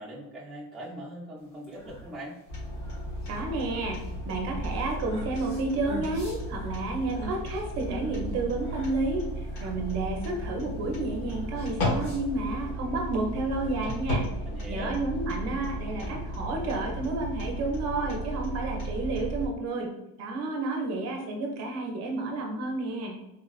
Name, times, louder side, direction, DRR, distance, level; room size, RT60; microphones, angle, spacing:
voice 1, 0.0-2.4 14.5-14.9, right 1 dB, ahead, -8 dB, 0.5 m, -40 dB
sound 1, 1.5-12.7, left 1 dB, 35° left, 1.0 m, -46 dB
sound 2, 2.5-19.5, equal, 70° left, 1.3 m, -34 dB
voice 2, 3.3-4.0 4.3-14.2 14.7-19.9 20.2-23.2, right 2 dB, 45° right, 1 dB, 0.6 m, -31 dB
3.6 x 2.3 x 2.3 m, 0.91 s
cardioid pair, 150°, 38 cm